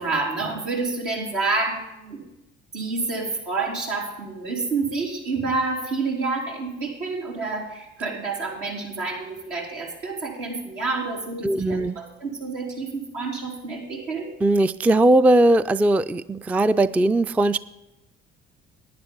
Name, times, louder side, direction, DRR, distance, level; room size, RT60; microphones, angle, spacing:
voice 1, 0.0-2.3 2.7-14.3, right 3 dB, 80° right, -3 dB, 3.6 m, -28 dB
voice 2, 11.4-12.0 14.4-17.6, right 1 dB, 5° right, 15 dB, 0.3 m, -19 dB
11.0 x 9.6 x 5.3 m, 0.95 s
hypercardioid pair, 60°, 30 cm